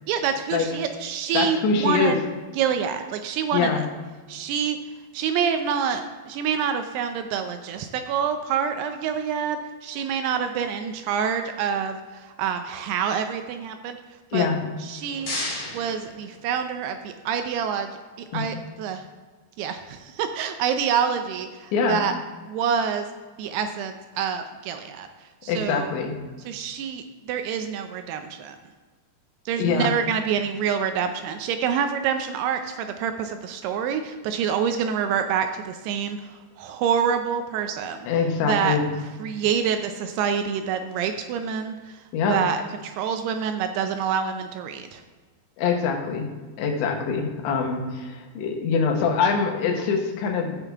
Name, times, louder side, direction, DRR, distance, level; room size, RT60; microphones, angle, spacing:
voice 1, 0.1-2.2 2.6-3.8 4.3-4.8 5.1-14.0 14.3-14.5 14.9-15.4 15.7-17.9 18.3-19.0 19.6-22.1 22.5-23.1 23.4-25.1 25.4-25.9 26.5-28.6 29.5-36.3 36.6-38.0 38.4-38.8 39.2-41.8 42.3-45.0, right 7 dB, 80° right, 7 dB, 2.4 m, -27 dB
voice 2, 1.3-2.2 3.5-3.9 14.3-14.8 18.3-18.5 21.7-22.0 25.5-26.2 29.5-29.9 38.0-38.9 42.1-42.4 45.6-46.3 46.6-50.6, left 5 dB, 80° left, 2 dB, 3.5 m, -24 dB
sound 1, 14.7-16.9, left 2 dB, 35° left, 2.6 m, -35 dB
15.5 x 5.8 x 3.5 m, 1.4 s
omnidirectional pair, 5.1 m